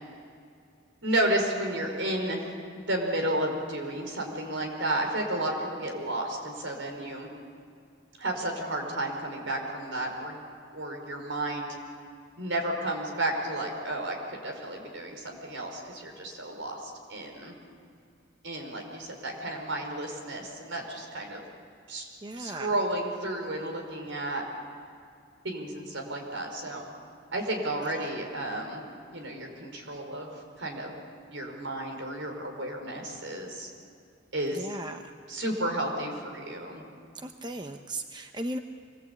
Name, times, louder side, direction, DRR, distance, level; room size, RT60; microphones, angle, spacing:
voice 1, 1.0-2.5 2.7-7.3 8.2-10.4 10.7-11.7 12.4-17.5 18.4-21.4 21.9-22.1 22.4-24.4 25.4-26.8 27.3-28.8 29.1-30.3 30.6-30.9 31.3-33.7 34.3-34.7 35.3-36.8, right 1 dB, 75° right, 2 dB, 5.1 m, -32 dB
voice 2, 22.2-22.7 27.8-27.9 34.5-35.1 37.2-38.6, right 1 dB, 25° right, 6 dB, 0.8 m, -37 dB
25.0 x 20.5 x 8.6 m, 2.4 s
head